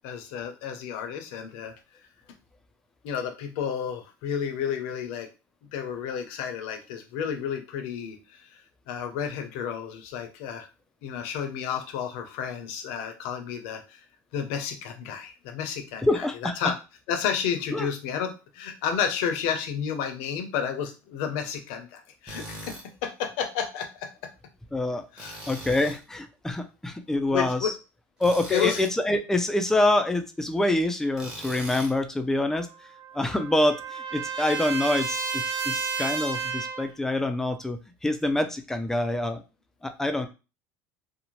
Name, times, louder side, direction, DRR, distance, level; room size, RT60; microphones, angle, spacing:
voice 1, 0.0-1.7 3.0-5.3 5.6-8.6 8.9-10.7 11.0-14.0 14.3-16.1 16.4-16.7 17.1-24.1 25.1-25.4 27.3-27.7 28.5-28.8, left 8 dB, 75° left, 5 dB, 0.6 m, -31 dB
voice 2, 16.0-16.5 17.7-17.9 24.7-25.1 25.5-27.7 28.2-32.7 33.1-39.4 39.8-40.3, left 1 dB, 5° left, 7 dB, 0.3 m, -26 dB
Tools, 22.3-22.9 25.2-26.0 28.2-29.0 31.1-32.0, right 1 dB, 10° right, 0.8 m, -40 dB
Trumpet, 32.5-36.9, right 5 dB, 60° right, 0.8 m, -32 dB
2.6 x 2.1 x 3.0 m, 0.30 s
supercardioid pair, 130°, 8 cm